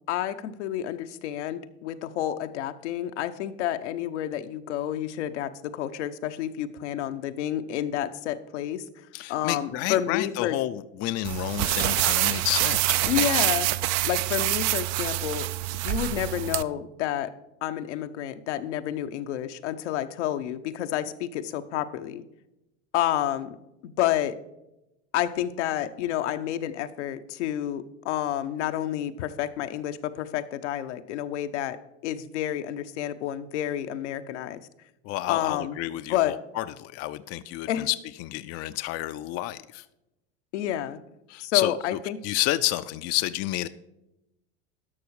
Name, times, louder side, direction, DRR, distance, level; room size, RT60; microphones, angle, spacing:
voice 1, 0.1-8.8 9.3-10.6 13.1-15.5 15.8-17.3 17.6-22.2 22.9-23.6 23.8-24.4 25.1-34.6 35.3-35.8 36.1-36.3 37.7-37.9 40.5-41.0 41.4-42.2, left 11 dB, 80° left, 9 dB, 0.8 m, -29 dB
voice 2, 9.1-13.3 35.0-39.8 41.3-41.7 42.2-43.7, left 16 dB, 45° left, 12 dB, 0.5 m, -30 dB
sound 1, 11.2-16.6, right 16 dB, 50° right, 0.5 m, -26 dB
12.0 x 6.2 x 4.7 m, 0.92 s
hypercardioid pair, 100°, 35 cm